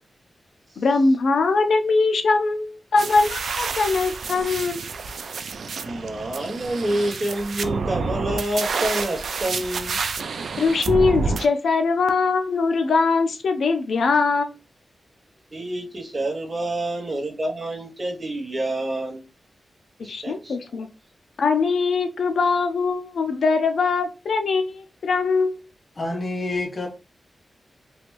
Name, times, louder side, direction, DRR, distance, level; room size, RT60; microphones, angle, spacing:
voice 1, 0.8-4.8 10.6-14.6 20.0-20.9 21.4-25.6, left 4 dB, 80° left, 0.4 m, -21 dB
sound 1, 3.0-11.5, right 4 dB, 70° right, 0.3 m, -29 dB
voice 2, 5.7-10.0 15.5-19.2 20.0-20.6, right 1 dB, 25° right, 0.9 m, -28 dB
voice 3, 26.0-26.9, left 2 dB, 35° left, 0.7 m, -27 dB
3.2 x 2.5 x 3.0 m
wide cardioid pair, 155°, 0 cm